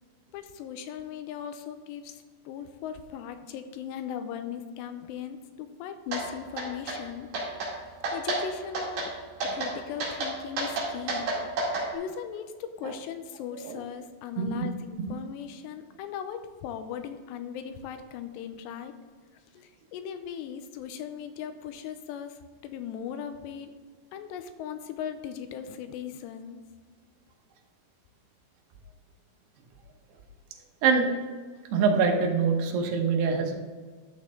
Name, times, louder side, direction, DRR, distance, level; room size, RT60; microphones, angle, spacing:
voice 1, 0.3-7.8 8.1-9.1 9.4-11.3 11.9-18.9 19.5-23.7 24.1-26.6, left 8 dB, 85° left, 8 dB, 2.7 m, -38 dB
sound 1, 6.1-6.2 6.6-7.0 7.3-7.7 8.0-8.4 8.7-9.1 9.4-9.7 10.0-11.9, right 2 dB, 55° right, 3.5 m, -30 dB
voice 2, 14.4-14.7 30.8-31.1 31.7-33.5, right 5 dB, 75° right, 2 dB, 3.0 m, -24 dB
12.0 x 6.3 x 3.7 m, 1.5 s
omnidirectional pair, 5.0 m